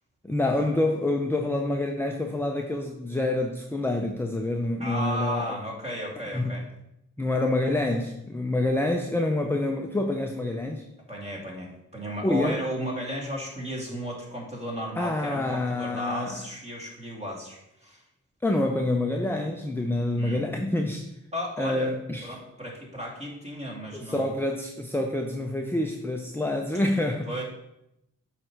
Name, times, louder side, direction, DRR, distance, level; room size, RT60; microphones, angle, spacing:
voice 1, 0.2-5.6 6.3-6.5 7.2-10.9 12.2-12.6 15.0-16.3 18.4-21.0 21.6-22.3 23.9-27.3, left 2 dB, 5° left, 3 dB, 0.6 m, -27 dB
voice 2, 4.8-6.6 11.1-18.0 20.2-20.5 21.3-21.9 22.2-24.3 27.3-27.4, equal, 20° right, -2 dB, 2.5 m, -34 dB
7.5 x 3.3 x 6.0 m, 0.83 s
cardioid pair, 70°, 30 cm